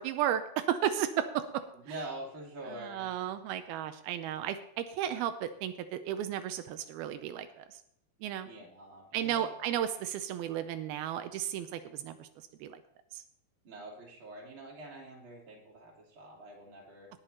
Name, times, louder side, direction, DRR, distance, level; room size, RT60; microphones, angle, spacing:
voice 1, 0.0-1.6 2.7-7.8 8.2-8.5 9.1-12.3 12.6-12.8 13.1-13.2, right 10 dB, 85° right, 9 dB, 2.6 m, -34 dB
voice 2, 1.7-3.1 8.4-9.5 13.6-17.1, right 1 dB, 35° right, -2 dB, 3.2 m, -45 dB
19.0 x 6.6 x 4.3 m, 0.72 s
omnidirectional pair, 4.4 m